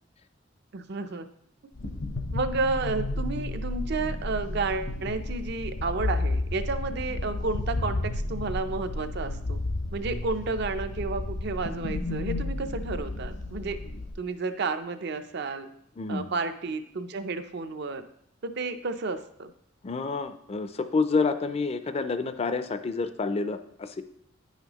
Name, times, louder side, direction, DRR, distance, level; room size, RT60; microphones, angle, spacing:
voice 1, 0.7-1.3 2.3-9.6 9.9-13.8 14.2-15.7 16.1-18.1 18.4-19.5, right 3 dB, 60° right, 9 dB, 0.5 m, -31 dB
sound 1, 1.8-14.1, left 2 dB, 75° left, 0.8 m, -32 dB
voice 2, 16.0-16.3 19.8-24.0, left 4 dB, 30° left, 10 dB, 0.4 m, -28 dB
9.4 x 5.7 x 2.9 m, 0.72 s
head